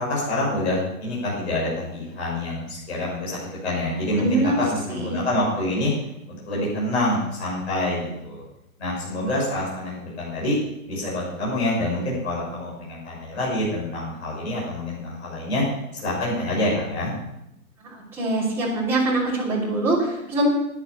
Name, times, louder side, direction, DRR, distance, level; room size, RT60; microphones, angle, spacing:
voice 1, 0.0-5.9 6.4-8.4 8.8-10.6 10.8-15.6 15.9-17.1, left 1 dB, 50° left, -5 dB, 6.6 m, -26 dB
voice 2, 4.2-4.6 4.9-5.2 17.8-20.5, right 2 dB, 5° right, -8 dB, 3.1 m, -24 dB
11.0 x 10.5 x 7.0 m, 0.85 s
hypercardioid pair, 170°, 43 cm